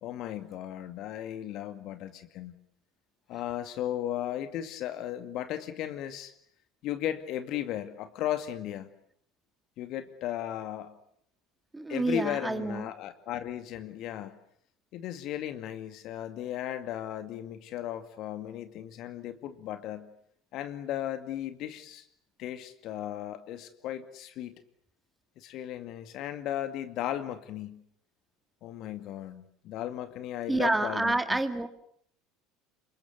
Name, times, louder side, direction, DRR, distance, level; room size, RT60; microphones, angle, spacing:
voice 1, 0.0-2.6 3.3-6.3 6.8-8.9 9.8-10.9 11.9-14.4 14.9-20.1 20.5-22.0 22.4-24.6 25.4-27.8 28.6-31.4, left 11 dB, 50° left, 10 dB, 2.2 m, -36 dB
voice 2, 11.7-12.9 30.5-31.7, right 2 dB, 10° right, 9 dB, 2.4 m, -28 dB
28.0 x 24.0 x 8.1 m, 0.67 s
figure-of-eight pair, 70°, 0 cm